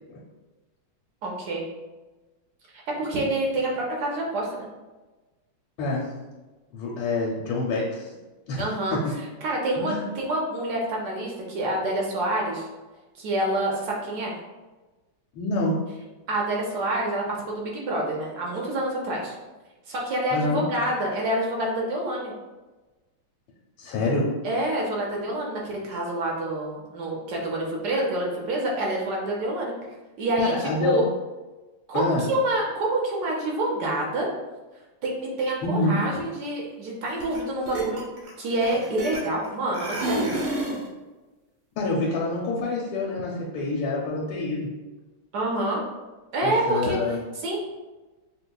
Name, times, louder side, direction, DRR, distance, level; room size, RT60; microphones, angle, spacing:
voice 1, 1.2-1.7 2.7-4.7 8.6-9.0 9.4-12.6 13.2-14.3 16.3-19.3 19.9-22.3 24.4-29.7 30.2-31.0 31.9-34.3 35.0-38.1 38.4-40.3 45.3-45.8 46.3-47.0 47.4-47.6, right 1 dB, 70° right, -1 dB, 1.0 m, -27 dB
voice 2, 5.8-6.1 6.7-8.1 8.5-8.6 8.9-9.1 9.8-10.0 15.3-15.8 20.3-20.6 23.8-24.3 30.4-31.0 31.9-32.3 35.6-36.0 41.7-44.7 46.4-47.2, left 2 dB, 80° left, -4 dB, 1.4 m, -26 dB
sound 1, 37.2-37.4 37.7-39.5 39.7-40.9, right 2 dB, 85° right, 1.7 m, -29 dB
5.2 x 2.1 x 2.2 m, 1.2 s
omnidirectional pair, 2.2 m